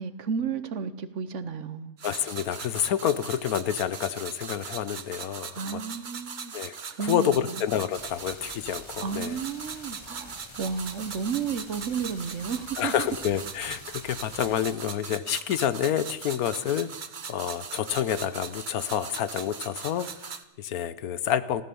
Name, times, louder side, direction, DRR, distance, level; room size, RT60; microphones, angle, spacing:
voice 1, 0.0-1.9 5.5-6.5 6.9-7.6 9.0-13.1, right 6 dB, 60° right, 1.2 m, -32 dB
voice 2, 2.0-5.8 6.5-9.4 12.8-16.9 17.3-21.6, left 10 dB, 85° left, 1.3 m, -28 dB
sound 1, 2.0-20.4, right 6 dB, 40° right, 0.8 m, -40 dB
sound 2, 7.9-14.8, left 5 dB, 45° left, 0.4 m, -48 dB
15.0 x 13.5 x 6.9 m
omnidirectional pair, 1.5 m